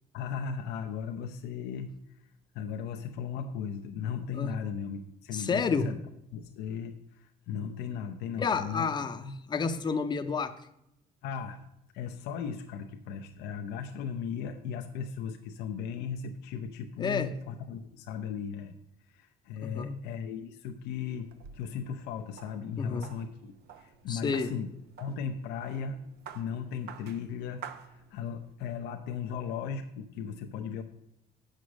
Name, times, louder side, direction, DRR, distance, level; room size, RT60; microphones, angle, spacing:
voice 1, 0.1-1.9 2.5-6.0 6.3-8.9 11.2-11.6 11.9-18.8 19.1-24.7 25.0-26.0 26.3-30.8, left 7 dB, 85° left, 4 dB, 0.7 m, -37 dB
voice 2, 5.3-5.9 8.4-10.5 17.0-17.3 19.6-20.0 22.8-23.1 24.1-24.5, left 5 dB, 25° left, 7 dB, 0.7 m, -30 dB
sound 1, 21.0-28.5, right 8 dB, 75° right, 0.8 m, -50 dB
8.3 x 6.5 x 6.2 m, 0.82 s
cardioid pair, 110°, 17 cm